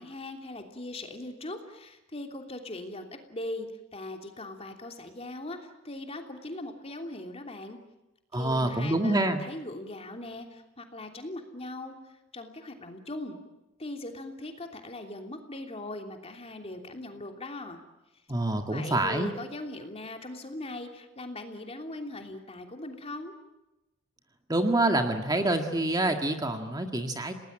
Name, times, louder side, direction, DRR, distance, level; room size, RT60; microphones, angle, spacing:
voice 1, 0.0-7.8 8.3-13.4 13.8-17.8 18.7-23.3, left 1 dB, 30° left, 4 dB, 3.1 m, -40 dB
voice 2, 8.3-9.4 18.3-19.3 24.5-27.3, right 1 dB, 20° right, 5 dB, 1.8 m, -26 dB
29.5 x 19.5 x 8.8 m, 1.0 s
head